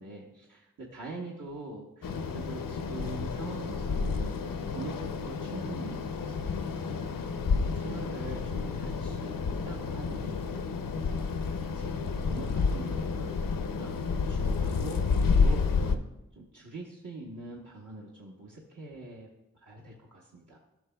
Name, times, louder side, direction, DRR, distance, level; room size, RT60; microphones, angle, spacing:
voice 1, 0.0-4.4 4.7-6.8 7.3-10.4 11.4-11.9 12.2-13.5 13.7-14.0 14.3-15.1 15.3-16.0 16.4-19.3 19.6-20.6, right 2 dB, 70° right, -4 dB, 1.1 m, -43 dB
sound 1, 2.0-16.0, left 5 dB, 90° left, 0.5 m, -30 dB
14.0 x 6.0 x 2.2 m, 0.94 s
wide cardioid pair, 80°, 32 cm